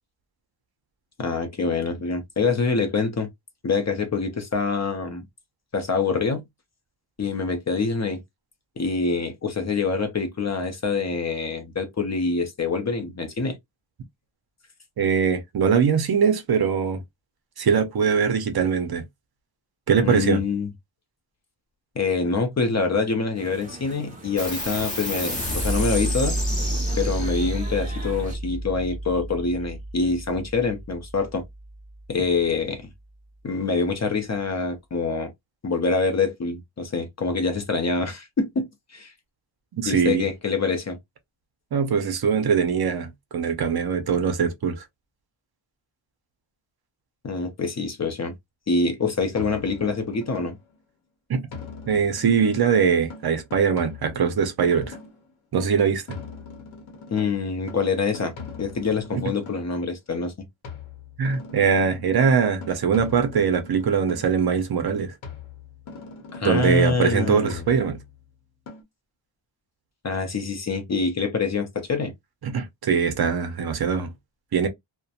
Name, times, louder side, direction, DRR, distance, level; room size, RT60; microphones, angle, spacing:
voice 1, 1.2-3.3 3.6-5.2 5.7-6.4 7.2-8.2 8.8-13.6 20.0-20.7 22.0-26.4 27.0-31.4 32.1-32.9 33.4-35.3 35.6-39.1 39.9-41.0 47.2-48.3 48.7-50.5 57.1-58.3 58.6-60.3 66.3-67.6 70.0-72.1, left 4 dB, 35° left, 0.5 m, -25 dB
voice 2, 15.0-17.0 17.6-19.0 19.9-20.4 39.7-40.2 41.7-44.8 51.3-51.4 51.9-54.9 55.5-56.0 59.1-59.2 61.2-65.1 66.4-68.0 72.4-74.1 74.5-74.7, right 6 dB, 55° right, 0.6 m, -22 dB
sound 1, 23.3-28.4, right 1 dB, 15° right, 0.8 m, -41 dB
sound 2, 24.4-31.3, right 1 dB, 15° left, 1.0 m, -29 dB
sound 3, 49.3-50.8 51.5-55.3 56.1-59.8 60.6-64.5 65.2-68.2 68.7-68.8, left 4 dB, 80° left, 0.9 m, -41 dB
2.7 x 2.1 x 2.3 m
wide cardioid pair, 160°, 47 cm